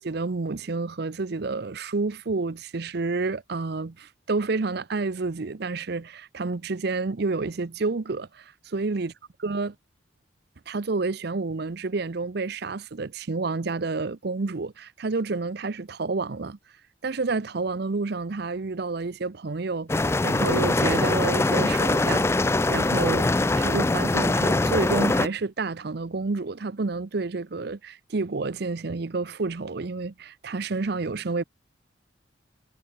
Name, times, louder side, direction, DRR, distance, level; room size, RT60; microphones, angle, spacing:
voice 1, 0.0-9.1 9.4-9.7 10.7-16.6 17.0-31.4, right 3 dB, 55° right, 0.6 m, -29 dB
sound 1, 19.9-25.3, left 2 dB, 15° left, 0.3 m, -23 dB
head